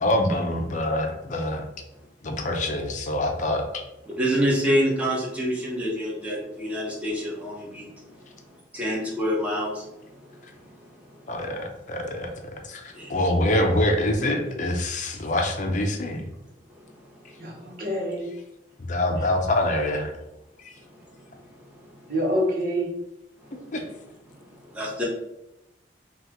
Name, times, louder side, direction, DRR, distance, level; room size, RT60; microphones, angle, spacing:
voice 1, 0.0-1.6 2.2-3.6 11.3-12.3 12.7-16.2 18.8-20.1 20.6-20.7 23.7-23.8, left 1 dB, 45° left, 3 dB, 0.6 m, -25 dB
voice 2, 4.1-7.9 8.7-9.9 10.3-10.4 12.9-13.1 17.3-17.4 21.1-21.2 23.4-23.5 24.7-25.1, equal, 10° right, -4 dB, 1.1 m, -26 dB
voice 3, 17.4-18.3 22.1-22.9, equal, 55° right, -2 dB, 1.1 m, -26 dB
5.6 x 2.4 x 2.9 m, 0.87 s
head